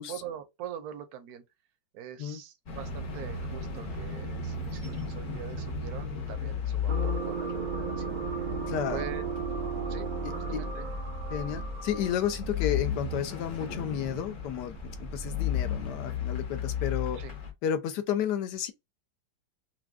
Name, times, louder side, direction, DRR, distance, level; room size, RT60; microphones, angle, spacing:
voice 1, 0.0-1.4 1.9-9.3 9.9-10.1 10.3-10.9 17.1-17.3, right 9 dB, 65° right, 1.1 m, -43 dB
sound 1, 2.7-17.5, left 5 dB, 50° left, 1.3 m, -34 dB
sound 2, 6.9-12.5, right 5 dB, 45° right, 0.5 m, -35 dB
voice 2, 8.7-9.0 10.2-10.3 11.3-17.2 17.6-18.7, left 9 dB, 70° left, 1.2 m, -32 dB
5.9 x 2.2 x 2.3 m
omnidirectional pair, 2.0 m